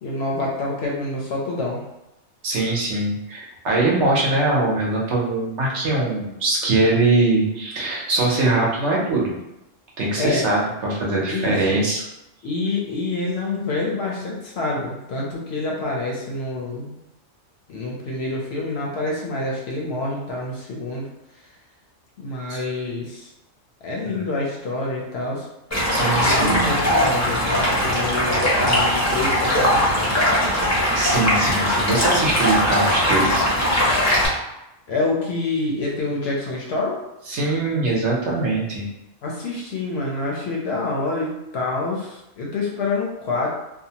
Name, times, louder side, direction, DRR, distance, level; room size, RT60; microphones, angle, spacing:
voice 1, 0.0-1.8 10.2-10.5 11.3-11.8 12.4-17.0 17.7-21.1 22.2-23.3 23.8-25.5 26.1-30.1 34.9-37.0 39.2-43.5, left 2 dB, 65° left, -2 dB, 0.7 m, -27 dB
voice 2, 2.4-9.3 10.0-12.0 22.5-22.6 24.0-24.2 25.9-26.6 30.9-33.5 37.3-38.9, right 2 dB, 65° right, -3 dB, 1.0 m, -22 dB
Stream, 25.7-34.3, equal, 20° left, 0.5 m, -20 dB
2.7 x 2.1 x 2.7 m, 0.90 s
omnidirectional pair, 1.3 m